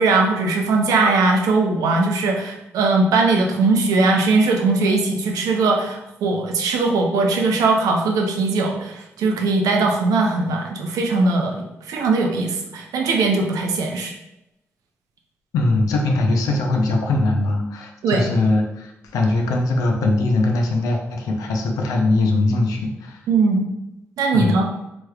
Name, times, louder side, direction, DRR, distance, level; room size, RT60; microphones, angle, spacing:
voice 1, 0.0-14.1 18.0-18.3 23.3-23.6 24.2-24.7, right 3 dB, 85° right, 2 dB, 0.5 m, -20 dB
voice 2, 15.5-23.2 24.3-24.6, left 2 dB, 85° left, 2 dB, 0.5 m, -21 dB
3.2 x 3.0 x 2.3 m, 0.88 s
supercardioid pair, 50°, 6 cm